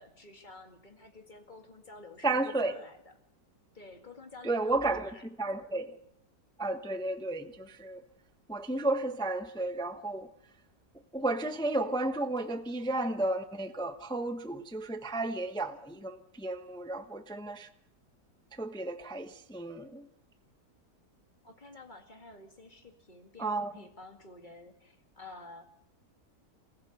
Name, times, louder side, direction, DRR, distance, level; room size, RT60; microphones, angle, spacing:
voice 1, 0.0-3.1 3.7-5.2 21.4-25.6, left 2 dB, 25° left, 2.2 m, -51 dB
voice 2, 2.2-2.8 4.4-5.1 5.4-5.9 6.6-8.0 8.5-10.3 11.1-17.7 18.5-20.1 23.4-23.7, right 2 dB, 5° left, 0.7 m, -33 dB
28.0 x 15.5 x 6.7 m
omnidirectional pair, 1.9 m